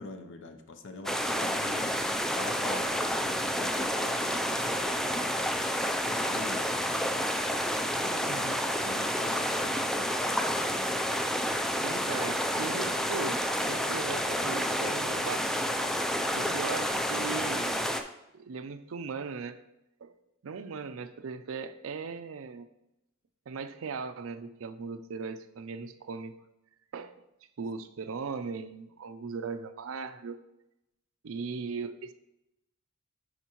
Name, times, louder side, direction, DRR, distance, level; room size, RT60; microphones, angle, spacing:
voice 1, 0.0-2.1 2.3-5.5 6.0-7.4 7.9-8.5 8.8-10.5 16.3-16.7, left 3 dB, 60° left, 7 dB, 0.7 m, -46 dB
sound 1, 1.1-18.0, equal, ahead, 0.3 m, -29 dB
voice 2, 8.3-8.6 11.8-15.7 16.3-17.8 18.3-19.6 20.0-20.1 20.4-22.7 23.5-26.3 26.9-27.2 27.6-30.4 31.2-32.1, right 5 dB, 70° right, 11 dB, 0.5 m, -38 dB
9.9 x 4.6 x 3.0 m, 0.90 s
head